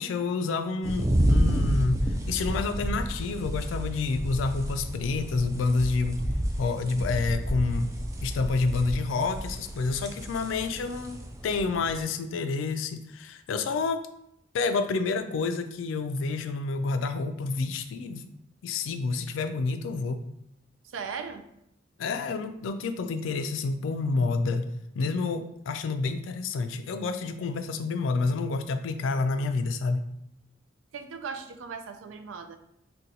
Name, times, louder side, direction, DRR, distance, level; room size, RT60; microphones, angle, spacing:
voice 1, 0.0-6.2 6.6-7.9 8.2-14.1 14.5-18.3 18.6-20.2 22.0-24.7 24.9-30.0, left 4 dB, 80° left, 9 dB, 0.3 m, -29 dB
sound 1, 0.8-12.0, equal, 15° right, 0.3 m, -30 dB
voice 2, 20.8-21.5 30.9-32.6, right 5 dB, 85° right, 8 dB, 0.4 m, -38 dB
3.8 x 2.2 x 2.7 m, 0.78 s
head